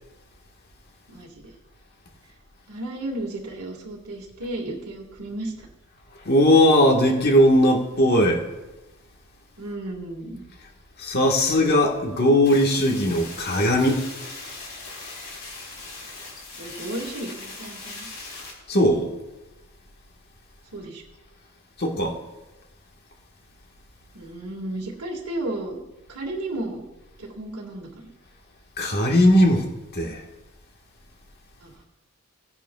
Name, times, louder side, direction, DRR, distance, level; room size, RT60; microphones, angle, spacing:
voice 1, 1.1-1.5 2.7-5.7 9.6-10.4 16.6-18.1 20.7-21.0 24.1-25.8 26.1-26.8 27.2-28.1 31.6-31.8, right 1 dB, 90° right, -2 dB, 1.8 m, -33 dB
voice 2, 6.2-8.4 11.0-14.0 18.7-19.1 21.8-22.2 28.8-30.2, left 1 dB, 45° left, 1 dB, 1.4 m, -19 dB
sound 1, 12.4-18.5, left 3 dB, 75° left, 3.1 m, -39 dB
17.5 x 10.0 x 2.3 m, 1.0 s
head